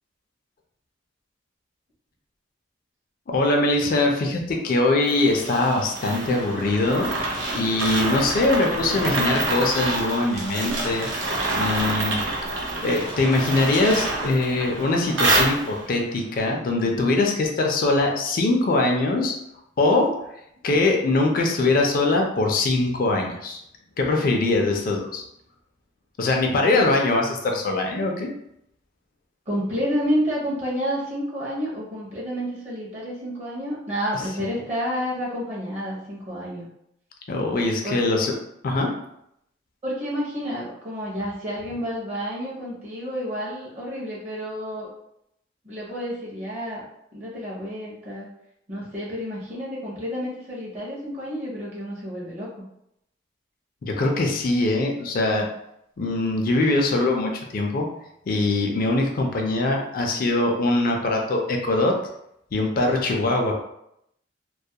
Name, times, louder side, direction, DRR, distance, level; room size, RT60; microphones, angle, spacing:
voice 1, 3.3-7.1 7.5-11.1 11.5-12.2 12.8-19.3 19.8-20.1 20.6-23.6 24.0-25.2 26.2-28.3 37.3-38.3 38.6-38.9 53.8-55.5 56.0-57.9 58.3-61.9 62.5-63.5, left 2 dB, 50° left, 1 dB, 0.4 m, -22 dB
sound 1, 5.0-16.0, right 2 dB, 85° right, 0.6 m, -27 dB
voice 2, 29.5-36.7 37.8-38.0 39.8-44.9 45.6-46.8 47.1-48.3 48.7-52.5, equal, 35° right, -6 dB, 0.6 m, -30 dB
2.3 x 2.1 x 2.7 m, 0.78 s
head